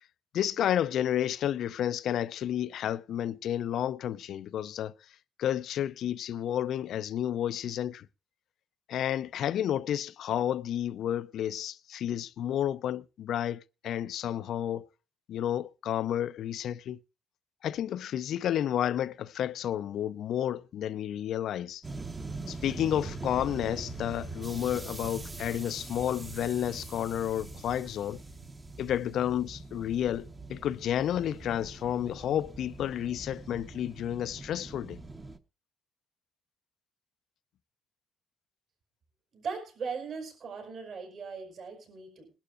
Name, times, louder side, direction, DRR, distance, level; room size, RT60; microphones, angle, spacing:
voice 1, 0.3-4.9 5.4-8.1 8.9-14.9 15.3-17.0 17.6-21.8 22.5-28.2 28.8-35.0, left 10 dB, 70° left, 0.5 m, -31 dB
sound 1, 21.8-35.4, right 3 dB, 20° right, 1.0 m, -43 dB
voice 2, 39.3-42.3, right 5 dB, 55° right, 5.2 m, -39 dB
21.5 x 11.5 x 2.5 m
cardioid pair, 140°, 0 cm